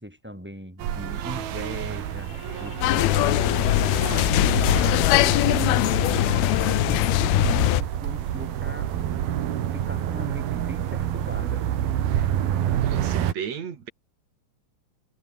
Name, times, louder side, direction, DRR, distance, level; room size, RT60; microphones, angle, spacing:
voice 1, 0.0-2.3 2.6-3.9 4.4-8.9 9.7-11.6, equal, 5° right, 5.2 m, -38 dB
sound 1, 0.8-13.3, right 11 dB, 75° right, 3.8 m, -28 dB
sound 2, 2.0-7.5, left 13 dB, 70° left, 2.7 m, -41 dB
sound 3, 2.8-7.8, left 17 dB, 85° left, 2.7 m, -21 dB
voice 2, 12.6-13.9, right 7 dB, 50° right, 3.5 m, -35 dB
omnidirectional pair, 4.4 m